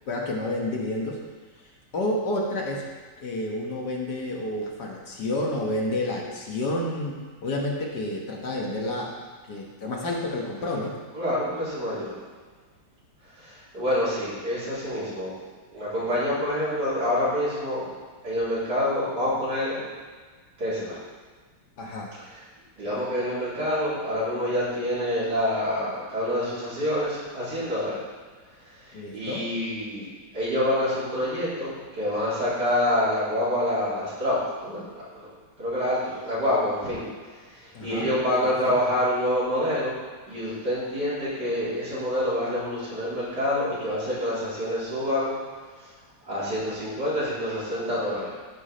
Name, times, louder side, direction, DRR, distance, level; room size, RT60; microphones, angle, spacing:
voice 1, 0.1-1.2 1.9-2.9 3.2-9.1 9.4-11.0 21.8-22.1 22.8-23.0 28.9-29.5 37.7-38.1 38.4-38.8, left 1 dB, 60° left, -1 dB, 1.8 m, -30 dB
voice 2, 11.1-12.2 13.4-15.3 15.7-17.9 18.2-19.8 20.6-21.0 22.3-22.4 22.8-28.0 28.9-35.3 35.6-37.1 37.5-40.0 40.3-45.3 46.2-48.3, left 1 dB, 60° right, -10 dB, 4.2 m, -27 dB
14.0 x 4.9 x 5.0 m, 1.4 s
omnidirectional pair, 2.1 m